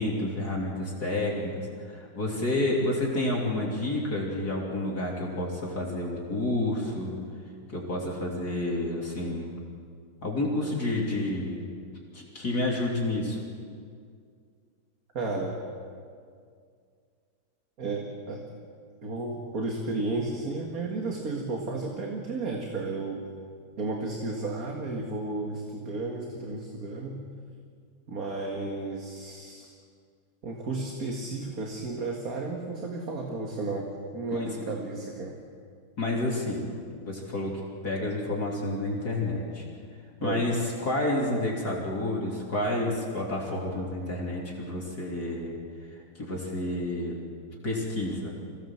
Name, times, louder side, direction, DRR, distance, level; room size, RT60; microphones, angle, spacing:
voice 1, 0.0-7.2 7.7-9.5 10.2-11.6 12.1-13.4 34.3-34.6 36.0-36.6 37.0-39.7 40.2-45.6 46.2-47.2 47.6-48.4, left 1 dB, 45° left, -3 dB, 3.6 m, -29 dB
voice 2, 15.1-15.6 17.8-18.4 19.0-23.3 23.8-27.2 28.1-29.7 30.4-35.4 40.2-40.5, right 3 dB, 45° right, 0 dB, 2.2 m, -33 dB
25.5 x 17.0 x 7.5 m, 2.2 s
omnidirectional pair, 2.3 m